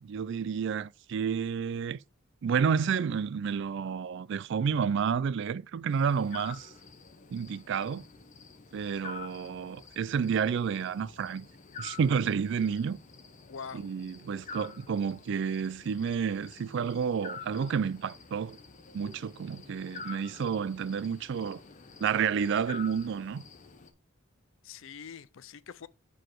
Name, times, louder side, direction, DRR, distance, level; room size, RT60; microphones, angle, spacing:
voice 1, 0.0-2.0 2.4-6.7 7.3-8.0 8.7-11.5 11.8-13.0 13.8-18.6 18.9-21.6 22.0-23.4, right 6 dB, 55° right, 0.3 m, -30 dB
sound 1, 5.9-23.9, left 5 dB, 35° left, 0.7 m, -48 dB
voice 2, 13.5-13.9 24.6-25.9, left 6 dB, 65° left, 0.5 m, -44 dB
6.1 x 4.9 x 4.5 m
head